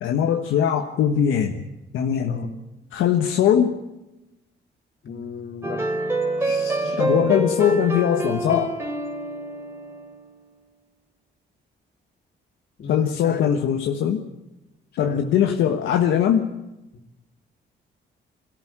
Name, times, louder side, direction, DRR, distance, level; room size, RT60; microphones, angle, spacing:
voice 1, 0.0-1.6 1.9-2.5 2.9-3.8 6.4-8.7 12.9-14.2 15.0-16.5, left 9 dB, 85° left, 4 dB, 1.4 m, -21 dB
voice 2, 5.0-5.8 12.8-13.6 14.9-15.2, left 5 dB, 55° left, 3 dB, 3.4 m, -35 dB
sound 1, 5.6-10.3, right 2 dB, 10° right, 3.3 m, -26 dB
22.5 x 14.0 x 8.8 m, 0.97 s
cardioid pair, 90°, 20 cm